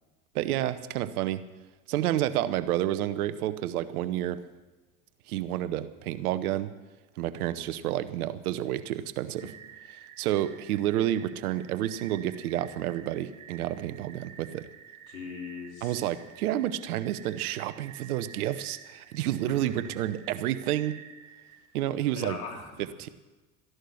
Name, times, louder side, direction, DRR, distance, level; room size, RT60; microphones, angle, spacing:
voice 1, 0.3-1.4 1.9-4.4 5.3-6.7 7.2-9.5 9.9-14.6 15.8-20.9 21.7-22.4 23.0-23.1, right 13 dB, 80° right, 14 dB, 1.0 m, -30 dB
sound 1, 9.3-21.6, right 8 dB, 45° right, 3.9 m, -50 dB
voice 2, 15.1-16.1 19.5-19.7 22.1-22.9, left 5 dB, 85° left, 0 dB, 3.5 m, -40 dB
14.5 x 11.5 x 6.4 m, 1.2 s
hypercardioid pair, 80°, 43 cm